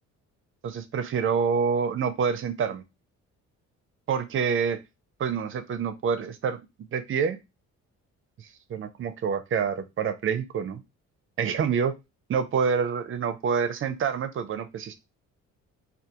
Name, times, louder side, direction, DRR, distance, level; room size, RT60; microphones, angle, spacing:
voice 1, 0.6-2.8 4.1-4.8 5.2-6.6 6.9-7.4 8.4-10.8 11.4-12.0 12.3-15.0, right 6 dB, 45° right, 10 dB, 0.5 m, -27 dB
2.3 x 2.3 x 2.8 m, 0.23 s
cardioid pair, 90°, 30 cm